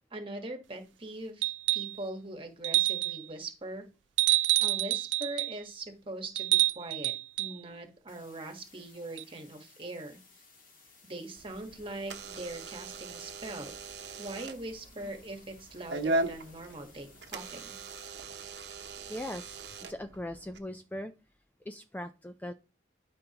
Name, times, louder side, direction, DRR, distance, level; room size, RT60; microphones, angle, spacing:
voice 1, 0.1-3.8 4.6-7.1 7.4-10.2 11.0-13.7 14.2-17.8, right 2 dB, 30° right, 5 dB, 1.4 m, -41 dB
sound 1, 1.4-2.0 2.6-3.2 4.2-5.6 6.4-7.6 9.2-9.3, right 17 dB, 80° right, 0.4 m, -27 dB
sound 2, 8.1-18.1, left 4 dB, 50° left, 1.9 m, -59 dB
Door / Alarm, 11.3-20.6, right 2 dB, 65° right, 0.9 m, -39 dB
voice 2, 19.1-19.6 19.9-21.1 21.7-22.5, left 1 dB, 10° left, 7 dB, 0.4 m, -39 dB
12.5 x 5.4 x 2.9 m, 0.32 s
head